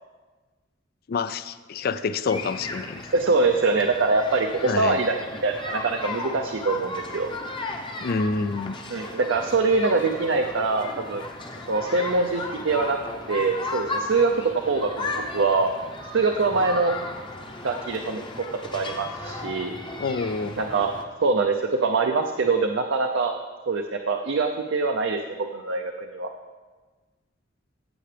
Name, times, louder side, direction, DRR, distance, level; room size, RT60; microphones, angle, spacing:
voice 1, 1.1-3.1 4.7-5.0 8.0-8.7 20.0-20.6, left 4 dB, 50° left, 14 dB, 0.4 m, -27 dB
sound 1, 2.2-21.0, left 2 dB, 25° left, 0.8 m, -35 dB
voice 2, 3.1-7.3 8.9-11.2 11.7-13.0 13.3-15.7 16.1-16.9 17.6-18.2 18.7-19.7 20.6-20.9 21.2-23.3 23.7-26.3, right 3 dB, 70° right, 3 dB, 0.6 m, -24 dB
15.0 x 7.7 x 3.3 m, 1.3 s
head